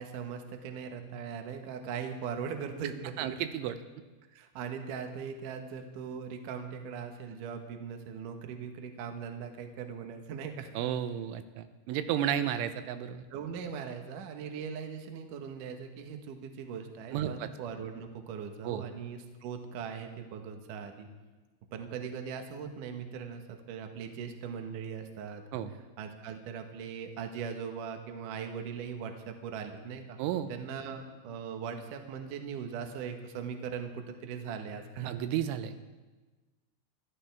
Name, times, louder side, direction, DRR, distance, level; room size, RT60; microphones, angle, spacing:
voice 1, 0.0-3.4 4.3-10.7 13.3-21.1 21.7-25.4 26.0-30.2 30.5-35.1, right 7 dB, 65° right, 5 dB, 2.1 m, -40 dB
voice 2, 3.2-3.8 10.8-13.3 17.1-17.5 18.6-18.8 25.5-25.7 30.2-30.5 35.1-35.7, right 10 dB, 90° right, 10 dB, 3.2 m, -32 dB
24.0 x 14.0 x 3.5 m, 1.2 s
omnidirectional pair, 5.4 m